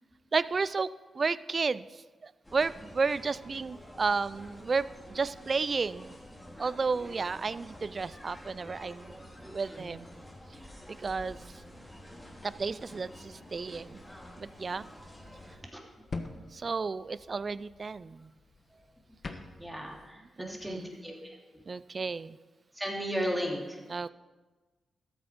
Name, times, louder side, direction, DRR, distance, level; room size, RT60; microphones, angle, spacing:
voice 1, 0.3-0.9 1.1-1.9 2.2-6.1 6.6-9.3 9.5-10.1 10.9-11.4 12.4-14.0 14.4-14.9 16.5-18.3 20.4-20.9 21.7-22.4 23.9-24.1, right 4 dB, 45° right, 17 dB, 0.4 m, -32 dB
sound 1, 2.4-15.6, left 1 dB, 15° left, 2.6 m, -49 dB
voice 2, 9.4-9.9 12.2-12.3 15.6-15.8 16.3-16.5 18.7-18.8 19.6-21.4 22.7-23.8, equal, 5° right, -1 dB, 3.0 m, -36 dB
sound 2, 15.2-20.1, left 3 dB, 50° left, 1.2 m, -45 dB
13.5 x 7.9 x 5.1 m, 1.3 s
cardioid pair, 55°, 0 cm